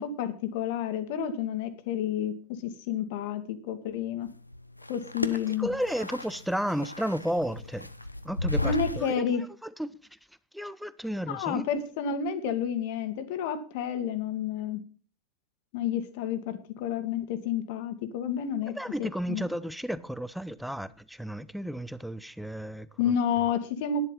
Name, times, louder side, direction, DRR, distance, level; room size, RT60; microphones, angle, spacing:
voice 1, 0.0-4.3 4.9-5.7 8.6-9.4 11.3-14.8 15.7-18.7 19.0-19.4 23.0-24.0, left 8 dB, 50° left, 1.9 m, -30 dB
sound 1, 4.2-9.2, left 1 dB, 85° left, 0.8 m, -35 dB
voice 2, 5.6-7.9 8.2-10.2 10.5-11.7 18.7-23.1, equal, ahead, 0.7 m, -33 dB
11.0 x 10.5 x 5.6 m
figure-of-eight pair, 90°, 0 cm